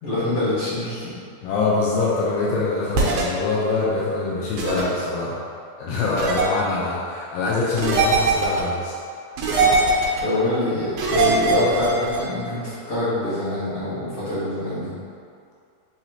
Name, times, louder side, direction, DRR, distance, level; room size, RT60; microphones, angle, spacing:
voice 1, 0.0-1.1 5.9-6.1 9.4-9.7 10.2-14.9, left 1 dB, 60° left, -14 dB, 1.7 m, -25 dB
voice 2, 1.4-5.4 5.8-9.0, left 3 dB, 80° left, -5 dB, 2.0 m, -24 dB
sound 1, 2.9-3.2 4.6-4.8 6.2-6.5 7.8-8.6 9.4-10.2 11.0-12.2, right 4 dB, 80° right, 2.4 m, -20 dB
5.8 x 2.8 x 2.8 m, 2.4 s
omnidirectional pair, 4.3 m